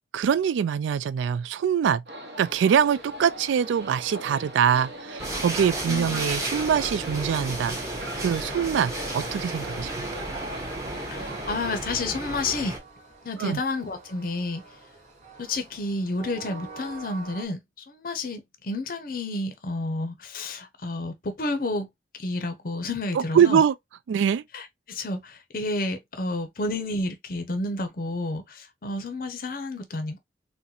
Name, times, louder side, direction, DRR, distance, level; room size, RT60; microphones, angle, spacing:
voice 1, 0.1-2.0 2.4-10.2 13.4-13.6 23.1-23.7 24.1-24.4, right 8 dB, 85° right, 0.3 m, -24 dB
sound 1, 2.1-11.8, equal, 65° right, 0.9 m, -40 dB
Train, 2.4-17.5, right 4 dB, 40° right, 1.2 m, -49 dB
sound 2, 5.2-12.8, right 2 dB, 15° right, 0.8 m, -33 dB
voice 2, 5.9-6.3 11.1-12.7 13.2-14.6 15.4-17.6 17.9-21.9 22.1-23.6 24.5-30.2, left 2 dB, 50° left, 0.6 m, -30 dB
3.9 x 2.1 x 2.7 m
head